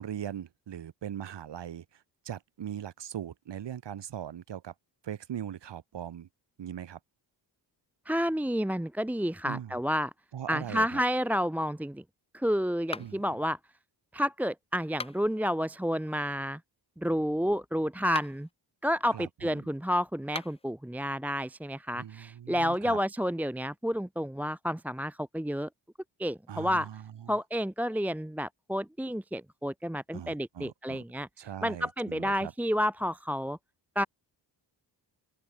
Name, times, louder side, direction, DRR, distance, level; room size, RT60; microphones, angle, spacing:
voice 1, 0.0-4.7 5.0-6.3 6.6-7.0 9.4-9.8 10.3-11.0 13.0-13.4 19.1-19.7 21.9-23.0 26.5-27.4 30.1-31.0 31.4-32.5, right 9 dB, 75° right, 6.2 m, -40 dB
voice 2, 8.1-10.1 10.5-12.0 12.3-13.6 14.1-16.6 17.0-18.5 18.8-25.7 26.2-26.9 27.3-31.3 31.6-33.6 34.0-34.1, equal, 5° right, 0.9 m, -30 dB
sound 1, 12.9-13.4 14.8-15.4 18.0-18.5 20.2-20.7, left 4 dB, 15° left, 0.5 m, -41 dB
open air
cardioid pair, 110°, 42 cm